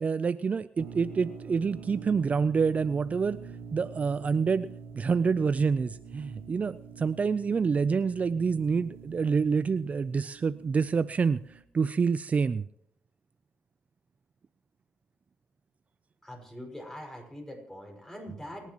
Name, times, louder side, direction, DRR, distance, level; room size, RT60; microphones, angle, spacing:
voice 1, 0.0-3.4 3.7-4.7 4.9-12.7, right 5 dB, 40° right, 14 dB, 0.5 m, -27 dB
sound 1, 0.8-11.6, right 6 dB, 85° right, 1.4 m, -46 dB
voice 2, 16.2-18.7, left 1 dB, 10° left, 2 dB, 5.7 m, -43 dB
29.0 x 11.0 x 3.0 m, 0.71 s
cardioid pair, 80°, 4 cm